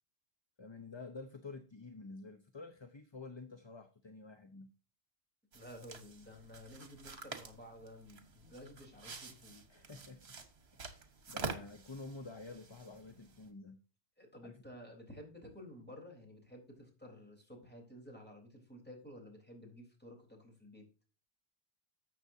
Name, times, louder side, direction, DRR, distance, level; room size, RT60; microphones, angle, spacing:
voice 1, 0.6-4.7 9.7-10.4 10.7-13.8 14.4-14.5, left 3 dB, 30° left, 0.7 m, -50 dB
voice 2, 5.5-9.6 14.2-20.9, equal, 10° left, 3.7 m, -53 dB
sound 1, 5.5-13.5, right 4 dB, 70° right, 1.6 m, -48 dB
13.0 x 7.7 x 2.7 m
omnidirectional pair, 1.1 m